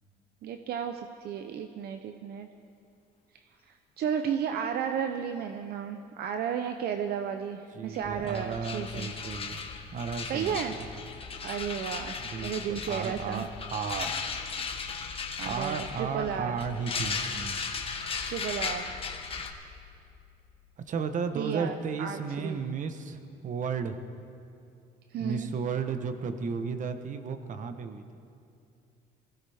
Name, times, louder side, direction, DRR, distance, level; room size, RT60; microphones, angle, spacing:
voice 1, 0.4-2.5 3.7-9.1 10.3-10.7 11.4-12.2 12.4-13.4 15.4-16.6 18.2-18.8 21.3-22.6 25.1-25.5, right 8 dB, 70° right, 7 dB, 0.8 m, -33 dB
voice 2, 7.7-9.6 9.9-10.6 12.3-14.3 15.4-17.6 20.9-24.0 25.2-28.0, right 5 dB, 50° right, 8 dB, 1.1 m, -34 dB
sound 1, 7.9-8.0 8.3-19.5, left 5 dB, 35° left, 1.3 m, -37 dB
sound 2, 8.0-21.3, left 6 dB, 80° left, 2.1 m, -48 dB
23.0 x 16.0 x 3.6 m, 2.5 s
cardioid pair, 110°, 17 cm